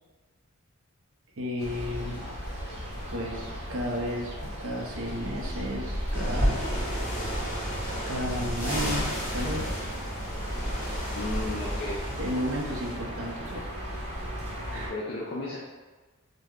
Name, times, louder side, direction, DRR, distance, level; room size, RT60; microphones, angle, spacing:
voice 1, 1.4-2.2 3.1-6.6 8.1-9.1 9.3-9.7 12.2-13.6 14.7-14.9, equal, 60° right, -1 dB, 0.6 m, -33 dB
sound 1, 1.6-14.9, equal, 30° right, 0.9 m, -35 dB
sound 2, 6.1-12.9, equal, 10° left, 1.4 m, -33 dB
voice 2, 11.1-12.0 14.7-15.6, left 2 dB, 45° left, -4 dB, 0.4 m, -34 dB
3.2 x 2.1 x 3.6 m, 1.3 s
head